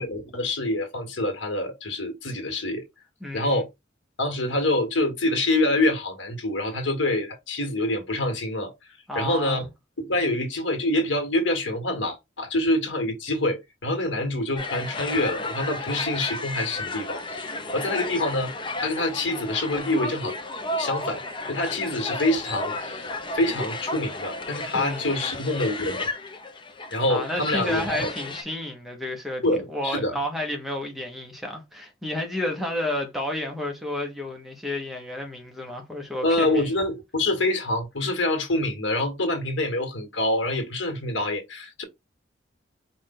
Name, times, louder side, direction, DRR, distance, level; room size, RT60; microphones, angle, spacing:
voice 1, 0.0-2.8 3.3-3.7 4.2-8.7 9.1-9.7 10.0-18.5 18.8-20.3 20.8-26.1 26.9-28.1 29.4-30.1 36.2-41.8, left 1 dB, 80° left, 1.6 m, -26 dB
voice 2, 3.2-3.6 9.1-9.7 24.7-25.4 27.1-36.7, left 1 dB, ahead, 1.1 m, -31 dB
sound 1, 14.6-28.4, left 2 dB, 25° left, 0.7 m, -33 dB
4.8 x 2.6 x 3.7 m
head